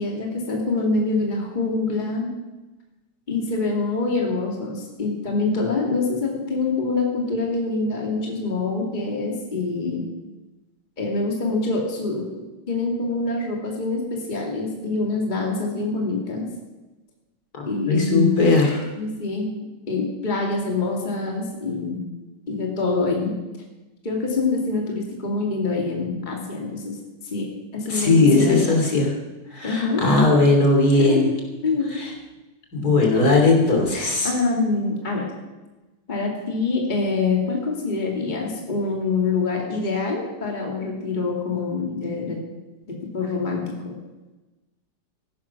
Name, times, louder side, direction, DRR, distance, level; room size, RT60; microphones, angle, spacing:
voice 1, 0.0-2.3 3.3-10.0 11.0-12.3 12.7-16.5 17.6-18.5 18.9-19.5 19.9-22.0 22.5-23.4 24.0-27.0 27.2-28.6 29.6-30.0 31.0-31.2 31.6-31.9 34.2-35.3 36.1-42.4 42.9-43.9, left 3 dB, 25° left, 0 dB, 2.3 m, -25 dB
voice 2, 17.5-18.8 27.9-29.1 29.5-31.3 31.9-32.1 32.7-34.3, left 3 dB, 55° left, 1 dB, 3.5 m, -18 dB
15.0 x 12.0 x 5.9 m, 1.1 s
omnidirectional pair, 1.9 m